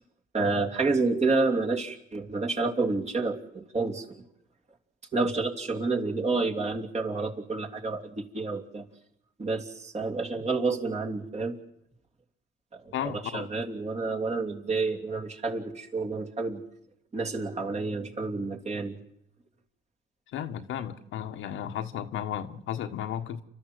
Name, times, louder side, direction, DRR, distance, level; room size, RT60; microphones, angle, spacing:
voice 1, 0.3-4.2 5.1-8.8 9.4-11.6 12.7-16.6 17.1-19.0, right 3 dB, 35° right, 1 dB, 3.2 m, -29 dB
voice 2, 12.9-13.5 20.3-23.4, left 10 dB, 75° left, 7 dB, 1.6 m, -34 dB
30.0 x 12.5 x 7.9 m, 0.75 s
cardioid pair, 85°, 20 cm